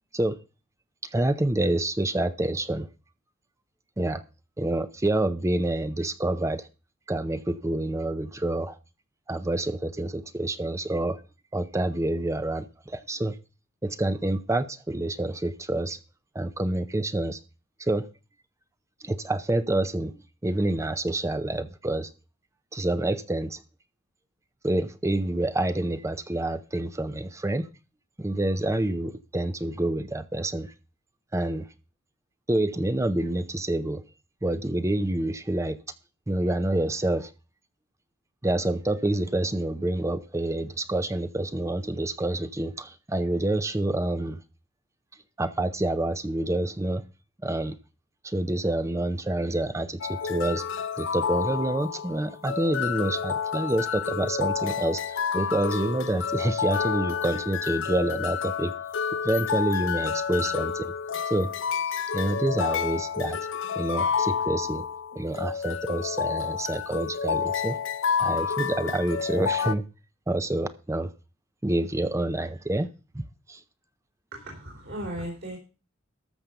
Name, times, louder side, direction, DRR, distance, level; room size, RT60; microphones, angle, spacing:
voice 1, 1.0-2.9 4.0-4.2 4.6-6.7 7.1-8.8 9.3-11.2 11.5-13.4 13.8-16.0 16.3-17.4 17.8-18.1 19.0-20.1 20.4-22.1 22.7-23.6 24.6-27.7 28.2-30.7 31.3-31.7 32.5-34.0 34.4-35.8 36.3-37.3 38.4-44.4 45.4-47.0 47.4-47.8 48.2-50.7 51.0-58.7 59.2-60.9 61.3-61.5 62.1-63.4 63.8-64.9 65.2-67.8 68.2-69.8 70.3-71.1 71.6-72.9 73.1-73.2 73.5-73.6, right 1 dB, 15° right, 0.6 m, -27 dB
sound 1, 50.0-69.8, left 7 dB, 65° left, 0.5 m, -29 dB
voice 2, 74.3-75.6, right 1 dB, 60° right, 3.6 m, -36 dB
13.5 x 5.1 x 6.9 m
head